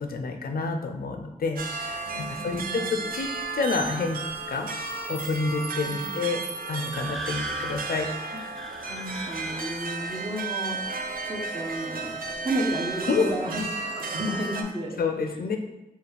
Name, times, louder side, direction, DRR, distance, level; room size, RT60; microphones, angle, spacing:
voice 1, 0.0-4.7 5.1-8.1 13.1-13.3 15.0-15.6, left 4 dB, 90° left, 5 dB, 0.5 m, -29 dB
sound 1, 1.6-14.6, right 4 dB, 75° right, 0.4 m, -34 dB
voice 2, 2.1-2.9 5.9-6.2 8.3-8.4 8.8-10.8 11.2-13.7 14.0-14.9, right 1 dB, 40° right, -2 dB, 0.9 m, -32 dB
sound 2, 6.9-10.1, right 1 dB, ahead, 0.3 m, -39 dB
4.9 x 2.4 x 3.2 m, 0.93 s
wide cardioid pair, 70°, 15 cm